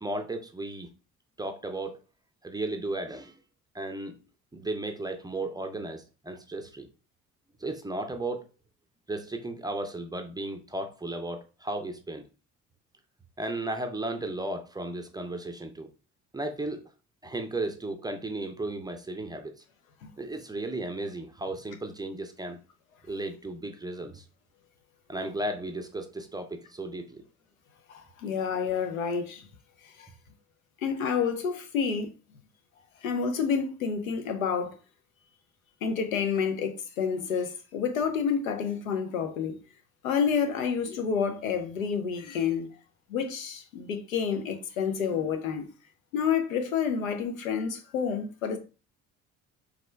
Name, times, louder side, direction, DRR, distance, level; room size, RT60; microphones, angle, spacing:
voice 1, 0.0-0.9 1.4-2.0 2.4-3.4 3.7-4.2 4.5-6.9 7.6-8.4 9.1-12.2 13.4-15.9 16.3-16.9 17.2-19.6 20.2-22.6 23.1-24.2 25.1-27.2, right 2 dB, 10° right, 0.5 m, -35 dB
voice 2, 27.9-29.5 29.8-30.1 30.8-32.1 33.0-34.7 35.8-39.6 40.0-42.7 43.1-45.7 46.1-48.6, left 6 dB, 75° left, 0.7 m, -29 dB
4.9 x 3.5 x 2.2 m
figure-of-eight pair, 50°, 41 cm